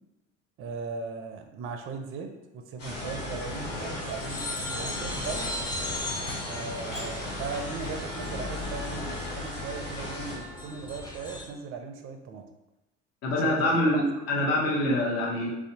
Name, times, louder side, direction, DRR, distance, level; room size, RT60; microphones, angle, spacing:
voice 1, 0.6-5.5 6.4-12.4 13.4-14.0, right 5 dB, 40° right, 5 dB, 0.4 m, -38 dB
sound 1, 2.8-10.4, left 1 dB, 70° left, 1.2 m, -38 dB
sound 2, 2.9-11.4, left 2 dB, 15° left, 0.6 m, -36 dB
sound 3, 3.1-4.4 5.0-5.2 5.9-6.0 6.3-6.6 6.9-7.1 7.5-7.9, left 1 dB, 85° left, 1.0 m, -46 dB
voice 2, 13.2-15.5, left 1 dB, 45° left, -1 dB, 0.8 m, -25 dB
2.6 x 2.1 x 2.6 m, 0.97 s
hypercardioid pair, 65°, 36 cm